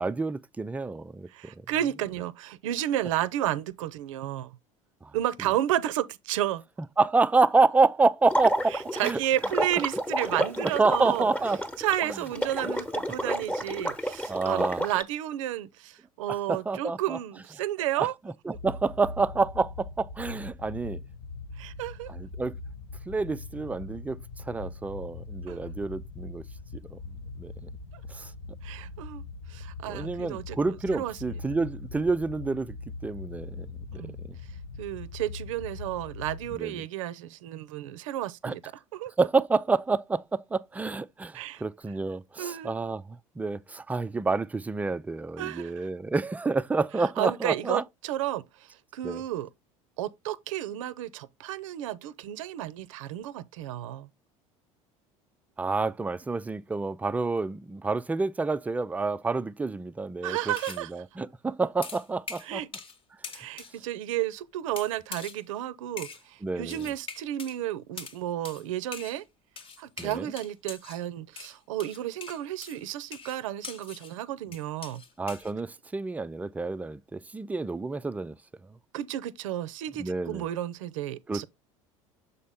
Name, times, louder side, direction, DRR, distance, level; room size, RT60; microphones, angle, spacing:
voice 1, 0.0-1.3 5.0-5.1 7.0-8.8 9.0-9.2 10.6-11.6 12.1-12.2 12.6-12.7 14.3-14.8 16.5-17.2 18.0-18.1 18.5-21.0 22.1-22.6 23.1-26.4 26.9-27.0 27.4-27.5 28.1-28.3 29.9-32.8 33.0-34.0 36.5-36.8 38.4-38.5 39.2-47.8 49.0-49.2 55.6-62.6 66.4-66.9 70.0-70.3 75.2-78.3 80.0-80.4 81.3-81.4, right 3 dB, 10° right, 0.3 m, -28 dB
voice 2, 1.3-4.5 5.1-6.6 8.9-11.3 11.8-18.1 21.6-22.1 25.5-25.6 28.6-29.2 29.5-31.2 33.9-34.2 34.8-38.6 38.9-39.1 41.3-41.6 42.4-42.7 45.4-45.9 47.0-48.4 48.9-49.5 50.0-54.1 60.2-60.9 62.4-62.7 63.3-69.2 69.8-75.0 78.9-81.5, right 13 dB, 70° right, 0.5 m, -32 dB
Water / Liquid, 8.3-15.0, equal, 10° left, 1.0 m, -30 dB
sound 1, 18.5-36.6, left 3 dB, 60° left, 1.2 m, -41 dB
sound 2, 60.6-60.9 61.8-63.0 63.2-63.8 64.8-65.4 66.0-66.3 66.7-67.6 68.0-68.2 68.5-68.6 68.9-69.2 69.6-71.0 71.4-74.2 74.5-75.5, left 5 dB, 30° left, 1.0 m, -42 dB
6.7 x 4.2 x 3.5 m
hypercardioid pair, 70°, 17 cm